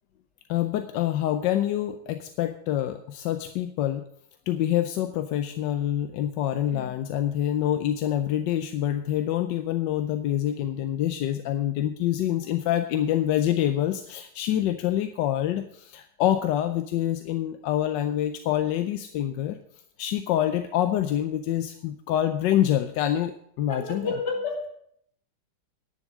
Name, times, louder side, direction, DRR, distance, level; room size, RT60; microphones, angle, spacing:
voice 1, 0.5-4.0 4.5-19.6 20.0-24.1, left 11 dB, 70° left, 1.2 m, -26 dB
voice 2, 23.7-24.7, left 4 dB, 55° left, 2.8 m, -31 dB
10.5 x 7.2 x 7.3 m
omnidirectional pair, 2.1 m